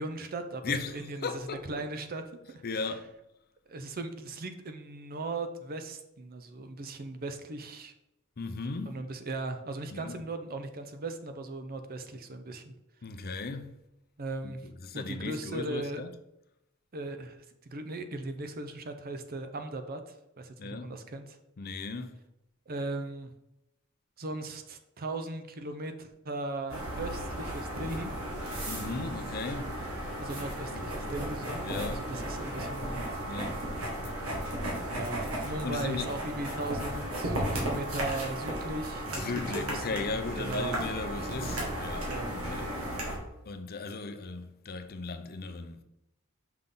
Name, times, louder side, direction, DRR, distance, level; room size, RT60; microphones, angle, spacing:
voice 1, 0.0-2.9 3.7-7.9 8.8-12.7 14.2-16.0 16.9-21.4 22.7-23.3 24.2-28.1 30.2-33.1 35.0-40.8 42.1-42.3, right 2 dB, 45° right, 0.6 m, -38 dB
voice 2, 0.6-1.7 2.6-3.1 8.4-9.0 9.9-10.2 13.0-13.8 14.4-16.1 20.6-20.9 21.6-22.2 28.7-29.7 30.7-30.9 31.6-32.1 33.3-33.6 35.6-36.1 39.1-42.7 43.5-45.8, left 4 dB, 45° left, 0.6 m, -37 dB
sound 1, 26.7-43.2, right 1 dB, 75° right, 2.0 m, -35 dB
5.9 x 5.4 x 3.8 m
head